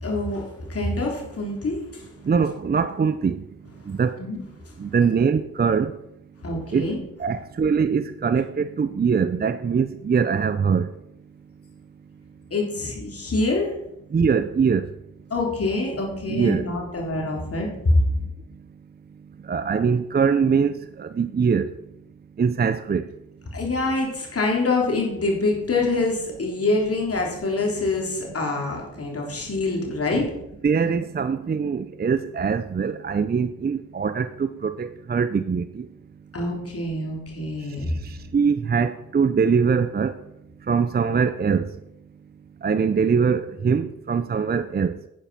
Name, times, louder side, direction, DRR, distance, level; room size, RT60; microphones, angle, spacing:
voice 1, 0.0-2.0 4.2-4.4 6.4-7.0 12.5-13.7 15.3-18.0 23.5-30.3 36.3-38.0, left 2 dB, 50° left, 3.7 m, -25 dB
voice 2, 2.2-3.5 3.9-4.2 4.8-6.0 6.7-10.9 14.1-14.9 16.3-16.7 17.3-17.4 19.4-21.7 22.4-23.1 30.1-30.3 30.6-35.9 37.9-40.2 40.7-41.7 42.6-45.0, right 6 dB, 30° right, 0.6 m, -23 dB
10.0 x 9.2 x 5.6 m
cardioid pair, 65°, 30 cm